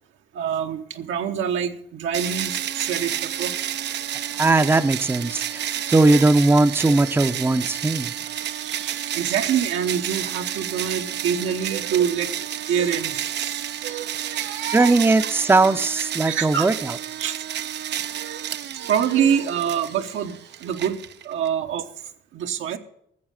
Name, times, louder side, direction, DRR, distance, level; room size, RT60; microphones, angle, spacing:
voice 1, 0.3-3.5 8.4-12.3 12.6-15.0 16.2-16.7 17.2-17.4 18.1-18.4 18.7-21.0 21.2-21.9 22.3-22.8, right 8 dB, 80° right, 5 dB, 1.2 m, -26 dB
sound 1, 2.1-21.5, right 10 dB, 60° right, 0.6 m, -31 dB
voice 2, 4.4-8.1 14.7-17.0, right 2 dB, 10° right, 10 dB, 0.6 m, -19 dB
14.0 x 7.4 x 7.4 m, 0.71 s
cardioid pair, 90°, 20 cm